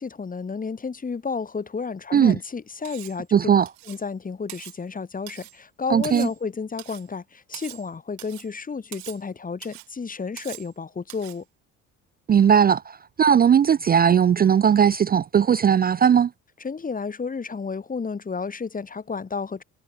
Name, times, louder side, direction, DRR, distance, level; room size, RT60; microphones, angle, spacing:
voice 1, 0.0-3.4 3.9-11.4 16.6-19.6, left 5 dB, 25° left, 1.6 m, -32 dB
Cutlery silverware, 2.8-3.2 3.7-4.1 4.5-4.8 5.3-5.6 6.0-6.4 6.8-7.1 7.5-7.9 8.2-8.5 8.9-9.2 9.6-9.9 10.4-10.7 11.1-11.4, right 40 dB or more, 85° right, 5.1 m, -42 dB
voice 2, 3.3-3.7 5.9-6.3 12.3-16.3, right 8 dB, 30° right, 0.5 m, -18 dB
supercardioid pair, 70°, 31 cm